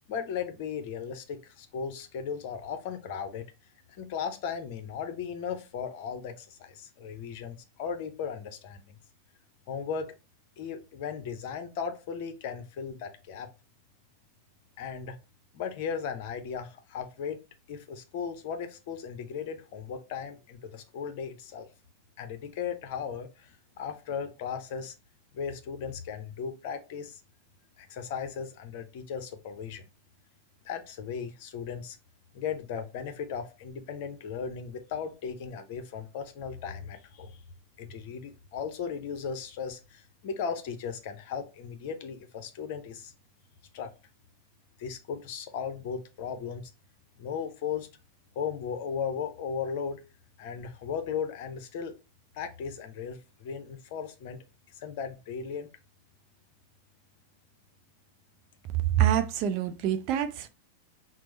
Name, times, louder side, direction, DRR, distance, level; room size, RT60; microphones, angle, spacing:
voice 1, 0.1-3.4 4.0-8.8 9.7-10.1 10.6-13.5 14.8-15.2 15.5-17.4 17.7-21.7 22.2-24.9 25.3-27.2 27.8-29.9 30.6-32.0 32.3-37.4 37.8-43.1 43.7-43.9 44.8-46.7 47.2-47.9 48.4-50.0 50.4-52.0 52.3-54.4 54.7-55.7, left 6 dB, 50° left, 0.6 m, -36 dB
voice 2, 59.0-60.5, right 11 dB, 40° right, 0.4 m, -26 dB
5.9 x 2.0 x 3.0 m
figure-of-eight pair, 90°, 0 cm